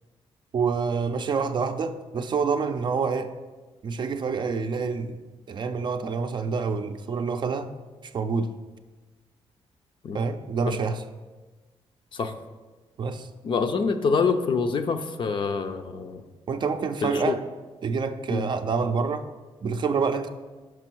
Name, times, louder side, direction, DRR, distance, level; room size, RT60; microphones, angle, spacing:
voice 1, 0.5-3.3 3.8-5.2 5.5-7.7 8.0-8.5 10.1-11.0 13.0-13.3 16.5-17.4 17.8-19.3 19.6-20.3, right 5 dB, 45° right, 8 dB, 0.5 m, -27 dB
voice 2, 13.4-16.2 17.0-17.3 18.3-18.5, left 5 dB, 50° left, 8 dB, 0.5 m, -26 dB
6.1 x 5.3 x 4.5 m, 1.3 s
cardioid pair, 105°, 11 cm